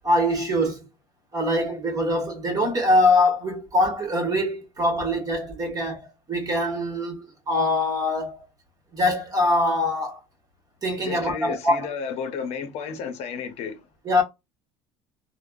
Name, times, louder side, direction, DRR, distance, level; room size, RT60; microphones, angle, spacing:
voice 1, 0.0-0.9 1.3-8.5 8.9-10.2 10.8-11.9 14.0-14.2, left 1 dB, 30° right, 1.2 m, -23 dB
voice 2, 11.0-13.9, left 6 dB, 55° left, 0.7 m, -32 dB
3.3 x 2.1 x 2.4 m
cardioid pair, 125°, 13 cm